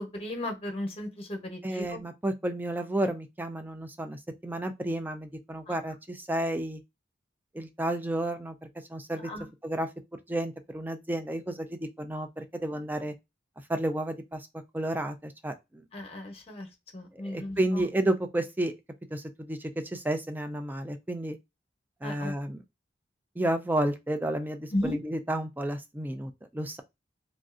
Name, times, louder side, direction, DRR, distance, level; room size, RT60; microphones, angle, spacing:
voice 1, 0.0-2.0 5.7-5.8 9.3-9.5 15.9-16.7 16.9-17.6 22.0-22.3 24.7-25.0, left 1 dB, 30° left, 0.8 m, -34 dB
voice 2, 1.6-6.8 7.5-9.3 9.6-9.9 10.3-13.1 13.7-14.5 14.7-15.8 17.1-18.7 19.1-21.4 22.0-22.6 23.4-26.8, right 1 dB, 10° right, 0.3 m, -31 dB
3.1 x 2.6 x 2.4 m
head